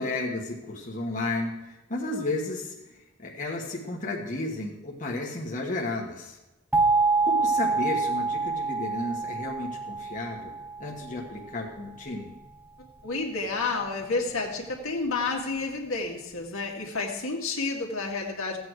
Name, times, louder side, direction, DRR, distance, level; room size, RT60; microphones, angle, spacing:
voice 1, 0.0-6.4 7.2-10.5 10.8-12.3, left 2 dB, 40° left, -1 dB, 1.4 m, -33 dB
sound 1, 6.7-11.5, right 3 dB, 10° right, 0.4 m, -26 dB
voice 2, 13.0-18.6, left 3 dB, 80° left, 0 dB, 2.1 m, -30 dB
15.0 x 8.6 x 4.7 m, 1.0 s
head